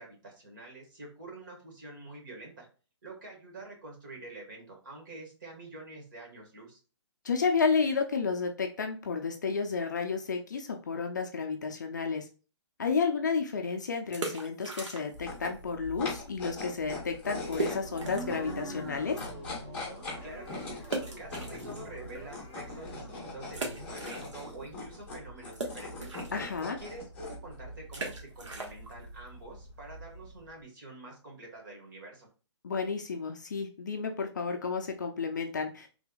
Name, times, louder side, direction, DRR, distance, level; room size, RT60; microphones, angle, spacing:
voice 1, 0.0-2.7 3.0-6.8 20.2-20.8 21.2-26.1 26.8-32.3, right 2 dB, 40° right, 0 dB, 1.5 m, -47 dB
voice 2, 7.2-12.3 12.8-19.2 26.3-26.8 32.6-36.0, left 5 dB, 40° left, 4 dB, 0.4 m, -31 dB
sound 1, 14.0-15.4 15.6-15.7 16.3-16.4 16.7-16.8 17.5-18.4 18.9-19.0 20.8-22.2 22.7-22.8 23.5-24.7 24.9-30.5, right 2 dB, 80° right, 1.2 m, -39 dB
sound 2, 15.1-30.5, left 2 dB, 10° left, 1.3 m, -42 dB
sound 3, 17.2-24.0, equal, 10° right, 0.8 m, -45 dB
3.4 x 3.2 x 2.3 m, 0.35 s
hypercardioid pair, 175°, 15 cm